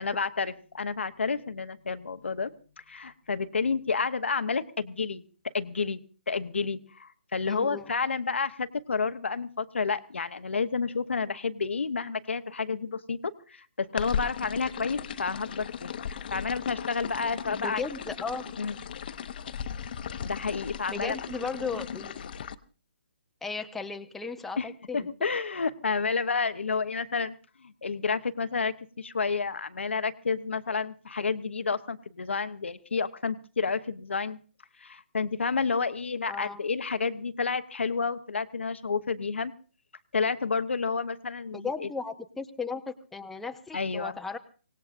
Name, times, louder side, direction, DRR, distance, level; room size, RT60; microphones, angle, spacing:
voice 1, 0.0-2.5 2.9-5.2 5.5-6.0 6.3-17.8 18.6-18.8 20.2-21.2 24.6-24.7 24.9-27.3 27.6-34.4 34.8-39.5 40.1-41.9 43.7-44.2, left 5 dB, 75° left, 11 dB, 0.9 m, -30 dB
voice 2, 7.5-7.8 17.5-18.5 20.9-22.1 23.4-25.1 36.3-36.6 41.5-44.4, left 4 dB, 5° left, 5 dB, 0.7 m, -36 dB
sound 1, 14.0-22.5, left 8 dB, 50° left, 0.8 m, -37 dB
24.5 x 18.5 x 2.6 m, 0.37 s
figure-of-eight pair, 140°, 6 cm